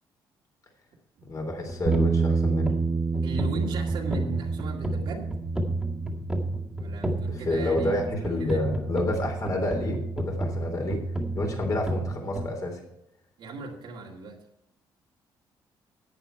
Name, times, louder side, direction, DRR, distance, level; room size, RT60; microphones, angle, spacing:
voice 1, 1.3-2.8 7.3-11.0 11.3-12.8, left 1 dB, 40° left, 3 dB, 3.5 m, -29 dB
sound 1, 1.4-12.5, right 1 dB, 5° right, 2.1 m, -32 dB
Bass guitar, 1.9-8.1, right 4 dB, 30° right, 0.8 m, -29 dB
voice 2, 3.2-5.4 6.8-8.0 8.2-8.7 13.4-14.4, right 3 dB, 70° right, 0 dB, 2.1 m, -38 dB
11.0 x 8.6 x 4.6 m, 0.79 s
cardioid pair, 85°, 9 cm